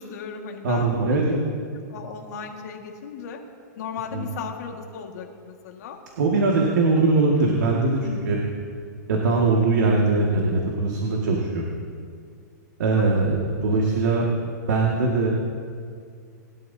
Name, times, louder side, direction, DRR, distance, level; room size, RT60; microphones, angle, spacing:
voice 1, 0.0-1.2 1.9-3.4 3.8-6.0 6.8-7.0 8.0-8.3 13.0-13.3, left 6 dB, 60° left, 2 dB, 1.9 m, -36 dB
voice 2, 0.6-1.4 4.1-4.3 6.2-8.4 9.1-11.8 12.8-15.3, right 3 dB, 70° right, -1 dB, 2.0 m, -21 dB
21.0 x 12.5 x 2.8 m, 2.2 s
hypercardioid pair, 150°, 10 cm